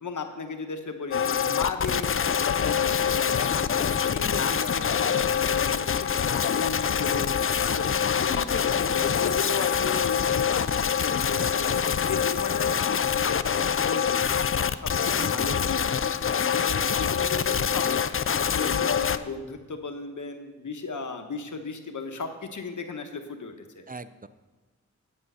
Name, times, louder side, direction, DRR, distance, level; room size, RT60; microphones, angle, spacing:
voice 1, 0.0-5.8 6.2-7.8 8.2-11.8 12.1-16.2 16.5-18.2 18.5-23.8, left 4 dB, 90° left, 6 dB, 1.1 m, -35 dB
sound 1, 1.1-19.2, left 7 dB, 45° left, 0.4 m, -25 dB
voice 2, 15.2-15.7 23.9-24.3, right 3 dB, 30° right, 13 dB, 0.5 m, -41 dB
8.9 x 8.8 x 5.5 m, 1.3 s
wide cardioid pair, 65°, 30 cm